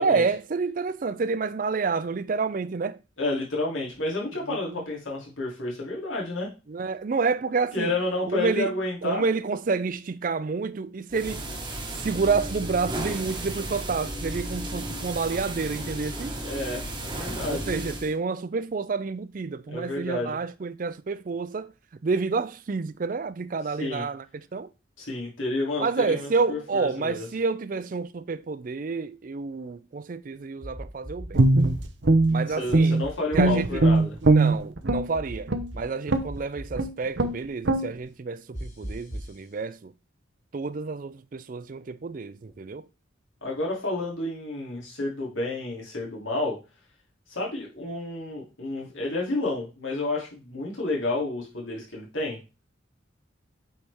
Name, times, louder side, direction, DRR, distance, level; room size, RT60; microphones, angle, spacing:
voice 1, 0.0-3.0 4.5-4.8 6.7-8.0 8.3-8.8 9.0-11.5 12.0-16.4 17.5-21.7 22.0-24.2 24.5-24.7 25.8-31.5 32.3-33.0 33.3-33.8 34.2-39.9 40.5-42.9, right 4 dB, 40° right, 0.4 m, -29 dB
voice 2, 3.2-6.5 7.7-9.2 16.4-17.8 19.7-20.4 23.8-24.0 25.0-27.3 32.5-34.1 43.4-46.6 47.3-52.4, left 2 dB, 80° left, 3.0 m, -30 dB
sound 1, 11.1-18.1, right 1 dB, 25° right, 1.3 m, -34 dB
sound 2, 30.6-31.3 31.6-32.3 33.0-34.0 34.9-35.8 36.1-36.8 38.5-39.3, equal, 40° left, 2.6 m, -37 dB
Guitar, 31.3-33.1 33.3-35.1 35.5-35.7 36.1-36.4 36.8-36.9 37.2-37.4 37.6-37.9, right 2 dB, 65° right, 0.8 m, -20 dB
8.6 x 4.6 x 3.5 m
head